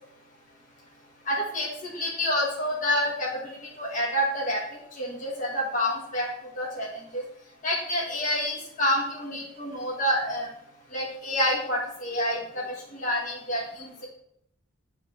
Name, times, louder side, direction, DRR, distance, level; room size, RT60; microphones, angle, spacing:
voice 1, 1.3-4.6 5.0-6.3 6.6-6.9 7.1-7.2 7.6-10.5 10.9-14.1, left 1 dB, 40° left, -4 dB, 1.3 m, -28 dB
7.7 x 3.4 x 4.4 m, 0.74 s
head